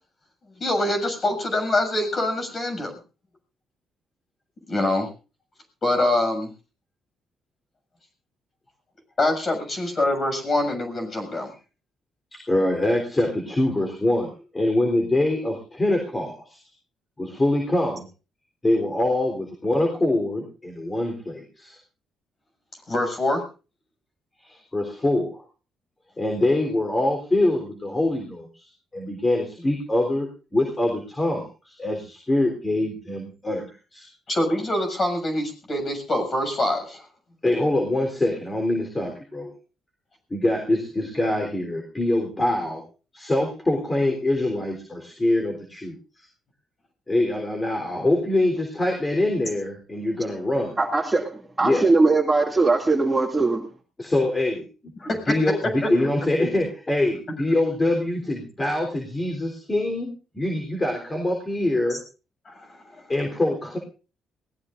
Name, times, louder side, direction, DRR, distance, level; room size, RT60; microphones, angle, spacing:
voice 1, 0.6-2.9 4.7-5.1 5.8-6.5 9.2-11.5 22.9-23.4 34.3-37.0 55.0-55.3 62.4-62.7 62.9-63.0, left 1 dB, 35° left, 5 dB, 7.0 m, -24 dB
voice 2, 12.3-16.6 17.2-18.0 18.6-21.8 24.4-25.4 26.2-34.1 37.4-39.5 40.3-42.8 43.1-46.3 47.1-50.7 51.6-51.9 54.0-54.9 55.3-62.0 63.1-63.8, left 1 dB, 20° left, 3 dB, 3.6 m, -24 dB
voice 3, 50.8-51.2 51.6-53.7, right 3 dB, 20° right, 1 dB, 2.4 m, -20 dB
23.0 x 18.0 x 2.6 m, 0.35 s
cardioid pair, 90°, 0 cm